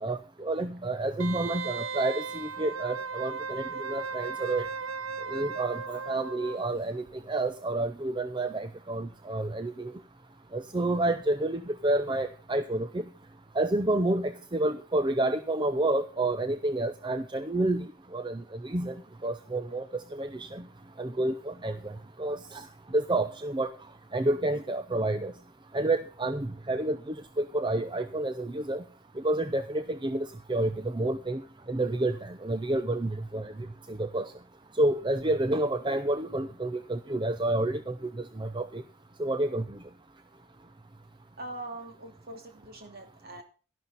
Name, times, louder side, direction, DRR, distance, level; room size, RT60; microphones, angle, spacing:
voice 1, 0.0-4.7 5.3-9.9 10.5-13.0 13.6-17.9 18.1-19.0 19.2-20.6 21.0-21.9 22.2-22.7 22.9-23.7 24.1-25.3 25.7-28.8 29.2-31.4 31.7-33.5 33.9-34.3 34.8-38.8 39.2-39.8, right 2 dB, 20° right, 11 dB, 0.6 m, -29 dB
Wind instrument woodwind instrument, 1.2-6.7 7.1-7.2, right 5 dB, 75° right, 0.6 m, -36 dB
voice 2, 41.4-43.4, right 2 dB, 45° right, 5 dB, 3.0 m, -42 dB
12.5 x 11.5 x 4.1 m, 0.38 s
head